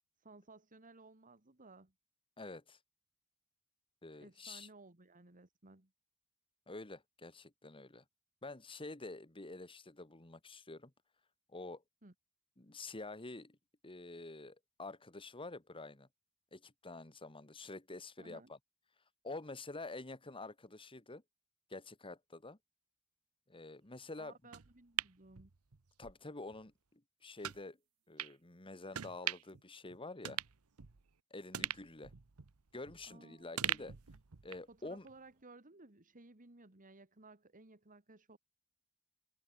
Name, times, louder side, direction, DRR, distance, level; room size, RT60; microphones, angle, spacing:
voice 1, 0.2-1.9 4.2-5.9 12.0-12.1 18.2-18.5 24.2-25.5 33.1-34.0 34.7-38.4, right 3 dB, 35° right, 2.2 m, -58 dB
voice 2, 2.4-2.8 4.0-4.7 6.7-8.0 8.4-10.9 11.5-11.8 12.6-13.6 13.8-16.1 16.5-18.6 19.2-21.2 21.7-22.6 23.5-24.4 26.0-27.8 28.1-30.4 31.3-32.1 32.7-34.0 34.4-35.1, left 2 dB, 25° left, 1.8 m, -48 dB
sound 1, 24.5-26.1 26.5-26.6 27.4-27.6 28.2-28.3 28.9-29.6 29.9-30.0 30.2-31.1 31.5-33.1 33.6-34.7 35.1-35.2, right 11 dB, 75° right, 1.0 m, -41 dB
head